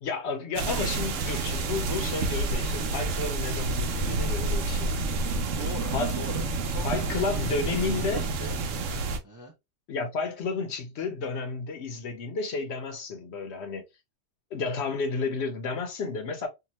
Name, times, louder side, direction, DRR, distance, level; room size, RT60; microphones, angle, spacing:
voice 1, 0.0-4.9 5.9-6.1 6.8-8.3 9.9-13.8 14.5-16.5, left 4 dB, 65° left, 0.8 m, -31 dB
sound 1, 0.5-9.2, right 3 dB, 80° right, 0.9 m, -29 dB
voice 2, 5.5-8.6 8.9-9.5, left 1 dB, 25° right, 0.4 m, -42 dB
2.7 x 2.2 x 2.9 m
omnidirectional pair, 1.3 m